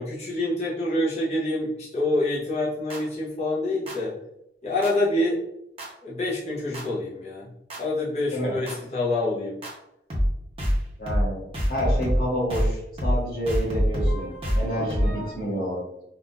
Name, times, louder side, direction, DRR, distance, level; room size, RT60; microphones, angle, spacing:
voice 1, 0.0-4.1 4.6-5.4 6.0-7.5 7.8-9.6, left 1 dB, 35° left, -7 dB, 0.9 m, -26 dB
sound 1, 2.9-3.0 3.9-4.0 4.8-4.9 5.8-5.9 6.7-6.8 7.7-7.8 8.7-8.8 9.6-9.7 10.1-10.3 10.6-10.8 11.1-11.3 11.5-12.2 12.5-12.7 13.0-13.2 13.5-15.3, equal, 30° right, 0.8 m, -25 dB
voice 2, 11.0-16.0, equal, 55° left, -6 dB, 1.4 m, -29 dB
3.7 x 2.6 x 2.4 m, 0.81 s
head